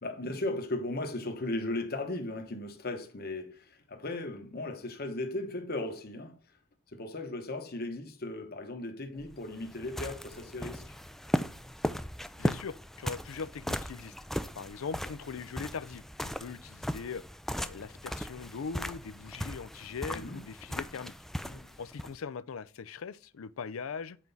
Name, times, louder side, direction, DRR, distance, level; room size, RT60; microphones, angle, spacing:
voice 1, 0.0-6.4 6.9-11.0 20.1-20.4 21.4-21.7, left 2 dB, 50° left, 1.0 m, -37 dB
sound 1, 9.2-22.2, equal, ahead, 0.3 m, -37 dB
voice 2, 12.4-14.1 14.6-17.2 17.6-21.1 21.8-24.2, left 5 dB, 85° left, 0.5 m, -40 dB
7.5 x 4.6 x 4.0 m
head